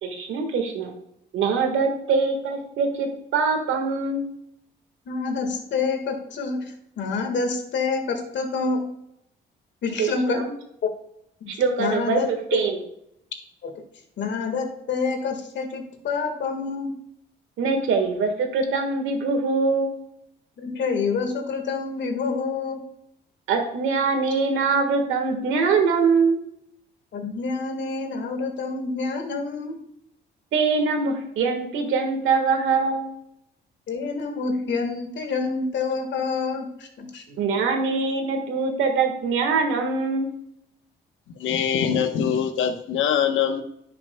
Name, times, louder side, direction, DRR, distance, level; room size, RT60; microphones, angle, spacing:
voice 1, 0.0-0.9 1.3-4.3 10.0-10.5 11.5-12.8 17.6-19.9 23.5-26.4 30.5-33.2 37.3-40.3, right 4 dB, 85° right, 5 dB, 1.5 m, -23 dB
voice 2, 5.1-8.8 9.8-10.4 10.8-10.9 11.4-11.5 11.8-12.6 13.6-13.7 14.2-16.9 20.6-22.8 27.1-29.8 33.9-37.2, left 4 dB, 65° left, 5 dB, 1.6 m, -27 dB
voice 3, 41.4-43.6, left 8 dB, 80° left, 8 dB, 1.0 m, -23 dB
11.0 x 5.9 x 2.2 m, 0.76 s
cardioid pair, 90°, 20 cm